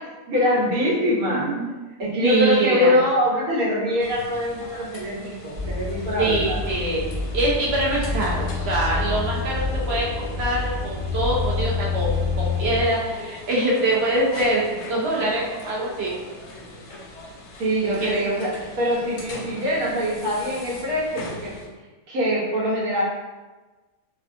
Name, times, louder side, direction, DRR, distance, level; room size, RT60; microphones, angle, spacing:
voice 1, 0.3-1.5 2.0-6.6 17.6-21.6 22.1-23.0, left 1 dB, 85° right, -6 dB, 1.4 m, -23 dB
voice 2, 1.3-1.7 2.2-3.0 6.2-7.0 7.3-16.1 18.0-18.1, right 2 dB, 60° right, -4 dB, 0.7 m, -24 dB
sound 1, 4.0-21.7, left 2 dB, 65° left, 0.8 m, -41 dB
sound 2, 5.5-12.8, left 4 dB, 15° left, 0.8 m, -27 dB
3.4 x 2.3 x 2.4 m, 1.2 s
omnidirectional pair, 1.5 m